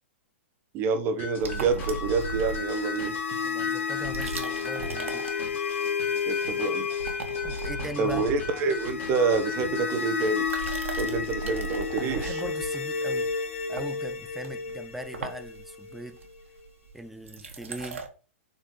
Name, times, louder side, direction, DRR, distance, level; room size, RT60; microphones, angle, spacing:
voice 1, 0.7-3.2 6.3-6.9 8.0-10.4 11.0-12.4, right 4 dB, 35° right, 1.2 m, -27 dB
sound 1, 1.2-10.8, left 4 dB, 30° left, 2.7 m, -39 dB
sound 2, 1.4-3.2 3.9-5.9 6.2-6.6 6.8-9.8 10.3-18.1, right 4 dB, 75° right, 1.6 m, -38 dB
sound 3, 1.7-16.7, left 6 dB, 70° left, 1.1 m, -32 dB
voice 2, 3.4-5.4 7.4-8.2 12.0-13.3 13.7-16.2 16.9-18.1, equal, 5° right, 0.7 m, -40 dB
7.3 x 4.2 x 3.2 m
hypercardioid pair, 115°, 7 cm